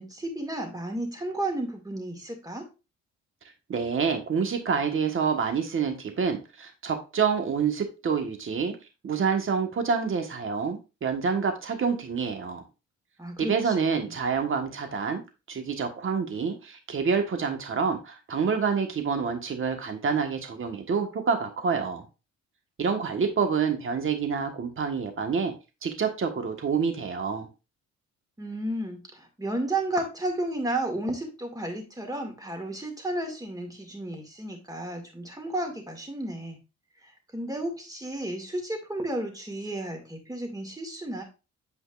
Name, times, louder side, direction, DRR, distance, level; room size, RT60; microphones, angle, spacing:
voice 1, 0.0-2.7 13.2-14.1 28.4-36.6 37.3-41.2, right 1 dB, 10° right, 3 dB, 2.2 m, -32 dB
voice 2, 3.7-8.7 9.0-12.6 13.4-15.2 15.5-22.0 22.8-25.5 25.8-27.5, right 6 dB, 45° right, 5 dB, 1.5 m, -27 dB
8.4 x 5.1 x 2.5 m, 0.28 s
cardioid pair, 90°, 30 cm